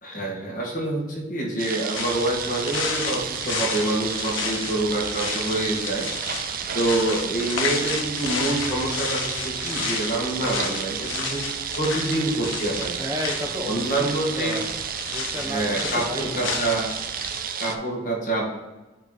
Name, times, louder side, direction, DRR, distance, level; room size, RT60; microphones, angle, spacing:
voice 1, 0.0-6.1 6.7-11.4 11.8-13.0 13.7-14.5 15.4-16.9 17.6-18.5, right 2 dB, 45° left, -3 dB, 1.9 m, -26 dB
sound 1, 1.6-17.8, right 8 dB, 45° right, 0.4 m, -32 dB
sound 2, 1.9-17.4, left 5 dB, 90° left, 0.8 m, -32 dB
voice 2, 13.0-16.5, equal, 20° right, 1 dB, 1.0 m, -33 dB
8.6 x 3.2 x 4.1 m, 1.1 s
head